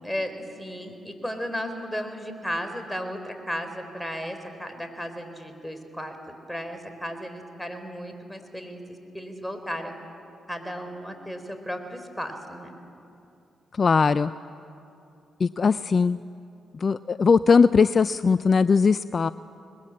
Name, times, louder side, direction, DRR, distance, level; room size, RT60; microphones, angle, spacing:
voice 1, 0.0-6.2 6.5-9.9 10.5-12.7, equal, 5° left, 7 dB, 4.0 m, -34 dB
voice 2, 13.7-14.3 15.4-16.2 16.7-19.3, left 5 dB, 45° left, 15 dB, 0.4 m, -20 dB
22.0 x 21.0 x 7.7 m, 2.7 s
hypercardioid pair, 45°, 0 cm